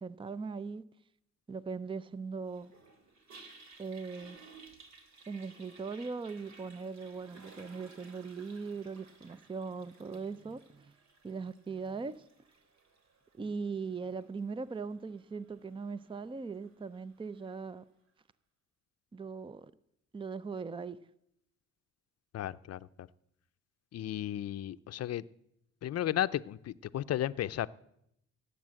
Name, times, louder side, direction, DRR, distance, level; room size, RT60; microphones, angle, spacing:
voice 1, 0.0-0.8 1.5-2.7 3.8-4.4 5.3-10.9 11.2-12.3 13.3-17.8 19.1-19.7 20.1-21.0, right 4 dB, 15° right, 0.5 m, -40 dB
Toilet flush, 2.5-17.7, right 4 dB, 65° right, 3.1 m, -58 dB
voice 2, 22.3-22.8 23.9-25.2 25.8-27.7, left 12 dB, 55° left, 0.6 m, -34 dB
18.0 x 8.3 x 7.6 m
cardioid pair, 90°, 30 cm